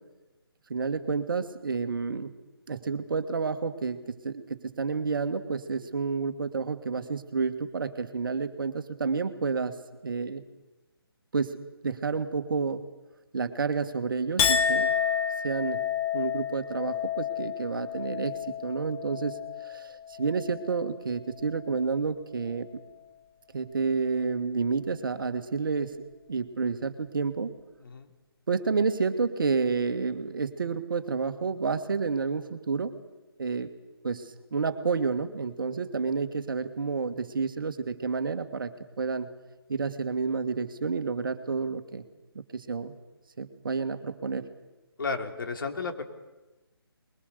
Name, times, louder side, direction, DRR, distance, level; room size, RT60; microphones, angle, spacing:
voice 1, 0.7-2.3 2.7-9.8 10.0-10.4 11.3-11.6 11.8-12.8 13.3-14.9 15.4-15.8 16.1-18.3 18.6-22.7 23.5-26.0 26.3-27.5 28.5-32.9 33.4-33.7 34.0-38.7 39.0-39.3 39.7-42.0 42.5-42.9 43.4-44.5, right 5 dB, 55° right, 9 dB, 1.8 m, -30 dB
Chink clink, 14.4-20.9 21.3-21.9, left 7 dB, 15° left, 1.1 m, -30 dB
voice 2, 45.0-46.0, left 4 dB, 55° left, 5 dB, 2.9 m, -33 dB
23.0 x 22.0 x 6.8 m, 1.1 s
figure-of-eight pair, 150°, 13 cm